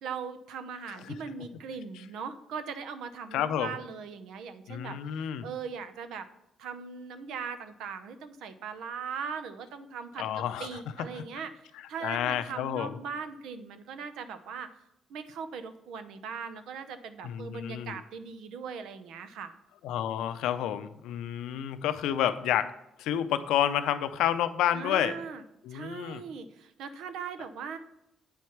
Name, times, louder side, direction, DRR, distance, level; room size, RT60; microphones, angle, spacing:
voice 1, 0.0-6.3 6.6-14.7 15.1-19.5 24.7-25.4 25.7-27.8, right 6 dB, 85° right, 10 dB, 0.7 m, -40 dB
voice 2, 3.3-3.8 4.7-5.5 10.2-10.8 11.1-11.2 12.0-13.0 17.2-18.0 19.8-22.7 23.0-25.2 25.6-26.2, left 10 dB, 90° left, 11 dB, 0.5 m, -30 dB
8.6 x 4.6 x 5.8 m, 0.84 s
cardioid pair, 90°, 0 cm